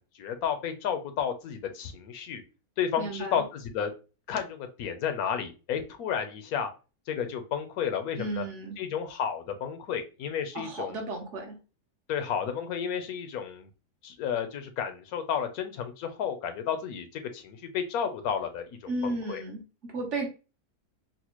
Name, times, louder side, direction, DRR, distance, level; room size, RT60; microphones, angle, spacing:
voice 1, 0.0-2.4 2.8-3.9 4.3-6.7 7.1-8.4 8.8-11.0 12.1-13.7 14.0-19.4, left 8 dB, 75° left, 7 dB, 1.1 m, -32 dB
voice 2, 3.0-3.4 8.2-8.8 10.5-11.6 18.9-20.3, right 2 dB, 55° right, 3 dB, 1.1 m, -34 dB
4.0 x 2.1 x 3.0 m, 0.31 s
omnidirectional pair, 1.6 m